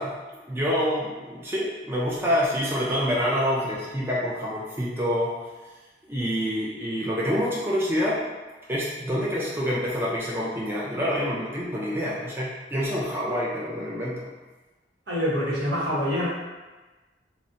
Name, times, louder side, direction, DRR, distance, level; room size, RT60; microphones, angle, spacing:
voice 1, 0.0-5.3 6.1-8.3 8.7-14.2, equal, 15° right, -6 dB, 0.3 m, -27 dB
voice 2, 15.1-16.3, equal, 80° right, -7 dB, 1.0 m, -25 dB
3.9 x 2.1 x 2.5 m, 1.2 s
head